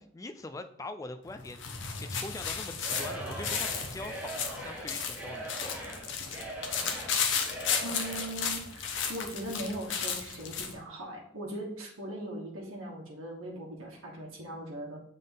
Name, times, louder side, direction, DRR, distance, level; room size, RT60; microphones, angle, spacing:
voice 1, 0.1-5.8, left 2 dB, 15° left, 8 dB, 0.3 m, -43 dB
sound 1, 1.3-10.8, left 6 dB, 60° left, 0.8 m, -34 dB
Singing / Crowd, 2.8-8.4, right 1 dB, 5° right, 1.0 m, -41 dB
voice 2, 7.8-15.0, right 1 dB, 75° right, -2 dB, 1.4 m, -40 dB
7.2 x 3.8 x 3.8 m, 0.73 s
head